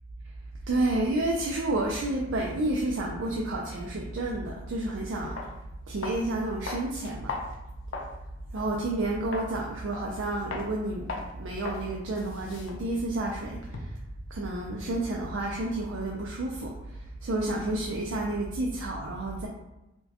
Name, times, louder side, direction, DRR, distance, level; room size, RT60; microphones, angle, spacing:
voice 1, 0.7-5.4 5.9-7.3 8.5-11.1 11.3-13.9 14.3-16.7 17.2-19.5, right 2 dB, 85° right, -1 dB, 0.4 m, -30 dB
sound 1, 4.8-4.9 5.4-5.5 6.0-6.3 6.7-8.2 8.6-8.7 9.3-9.5 9.9-10.2 10.5-10.7 11.1-11.3 11.6-11.8 12.1-14.1, left 3 dB, 85° left, 0.5 m, -38 dB
4.3 x 2.2 x 2.8 m, 0.93 s
head